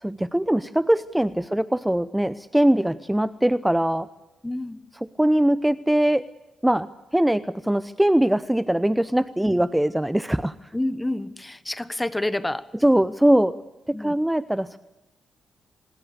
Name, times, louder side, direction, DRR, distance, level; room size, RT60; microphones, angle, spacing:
voice 1, 0.0-4.1 5.2-6.2 6.6-10.5 12.8-13.6 13.9-14.8, right 1 dB, 10° right, 16 dB, 0.7 m, -21 dB
voice 2, 4.4-4.8 9.4-9.5 10.7-12.7 13.9-14.2, left 1 dB, 15° left, 15 dB, 1.4 m, -28 dB
25.5 x 21.5 x 6.8 m, 1.0 s
hypercardioid pair, 40°, 0 cm